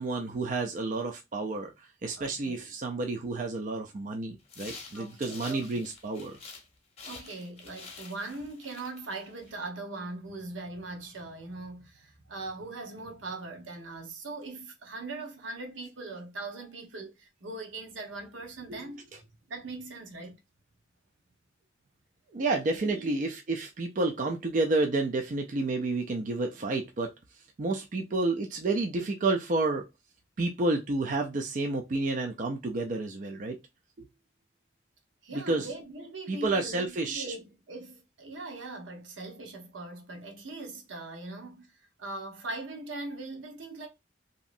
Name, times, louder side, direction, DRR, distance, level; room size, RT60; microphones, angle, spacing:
voice 1, 0.0-6.4 18.7-18.9 22.3-27.1 27.6-29.9 30.4-33.6 34.0-34.1 35.3-35.7 36.3-37.2, right 2 dB, 40° right, 0.4 m, -30 dB
voice 2, 2.2-2.7 4.9-5.8 7.0-19.1 19.5-20.4 22.8-23.1 35.2-43.9, right 2 dB, 85° right, 0.9 m, -41 dB
sound 1, 4.5-6.7 7.0-9.6, left 4 dB, 35° left, 0.7 m, -48 dB
3.0 x 2.7 x 2.5 m
head